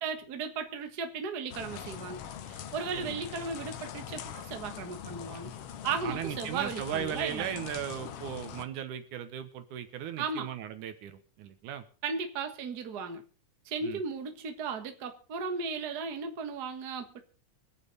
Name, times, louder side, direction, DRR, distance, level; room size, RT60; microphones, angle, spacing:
voice 1, 0.0-2.2 2.5-5.5 5.8-7.5 10.2-10.5 12.0-13.2 13.6-17.2, right 5 dB, 40° right, 6 dB, 1.6 m, -36 dB
sound 1, 1.5-8.6, left 9 dB, 70° left, 1.5 m, -42 dB
voice 2, 6.0-11.9 13.8-14.0, right 9 dB, 75° right, 9 dB, 2.6 m, -37 dB
24.5 x 8.8 x 4.0 m, 0.37 s
omnidirectional pair, 3.6 m